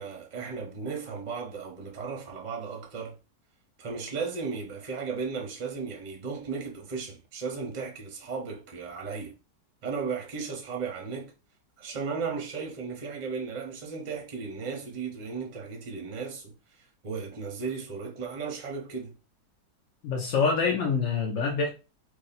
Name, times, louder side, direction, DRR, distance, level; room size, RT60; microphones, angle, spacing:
voice 1, 0.0-3.2 3.8-9.3 9.8-11.3 11.8-19.2, right 5 dB, 35° right, 0.7 m, -35 dB
voice 2, 20.0-21.9, left 5 dB, 60° left, 0.8 m, -26 dB
2.9 x 2.7 x 4.1 m
omnidirectional pair, 1.9 m